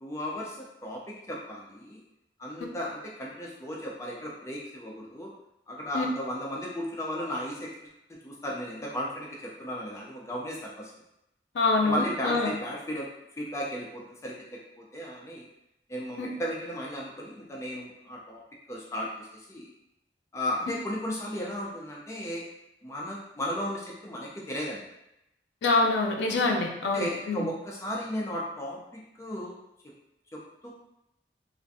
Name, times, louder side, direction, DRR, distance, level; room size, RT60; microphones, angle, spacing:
voice 1, 0.0-2.0 2.4-5.3 5.7-7.7 8.1-10.9 11.8-13.1 13.4-15.4 15.9-18.4 18.7-19.7 20.3-22.5 22.8-24.8 26.3-26.4 26.8-29.6 30.3-30.7, equal, 15° left, -3 dB, 0.4 m, -35 dB
voice 2, 11.5-12.5 16.2-16.3 25.6-27.5, left 3 dB, 85° left, 1 dB, 0.4 m, -25 dB
2.4 x 2.1 x 2.6 m, 0.85 s
head